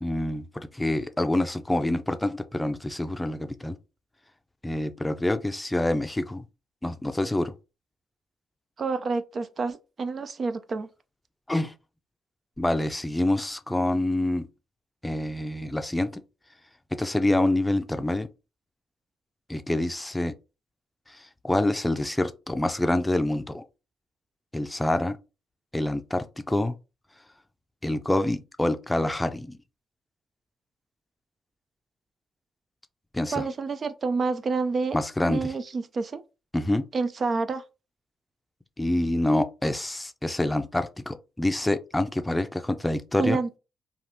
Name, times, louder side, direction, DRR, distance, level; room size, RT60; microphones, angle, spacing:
voice 1, 0.0-3.8 4.6-6.4 6.8-7.5 11.5-11.7 12.6-14.5 15.0-16.2 16.9-18.3 19.5-20.3 21.1-21.2 21.4-23.6 24.5-25.2 25.7-26.7 27.8-29.6 33.1-33.4 34.9-35.5 36.5-36.8 38.8-43.4, left 1 dB, 15° left, 0.5 m, -26 dB
voice 2, 8.8-10.9 33.3-35.0 35.3-36.2 36.9-37.6 43.2-43.6, right 4 dB, 50° right, 0.4 m, -28 dB
3.3 x 2.4 x 2.6 m
hypercardioid pair, 50°, 0 cm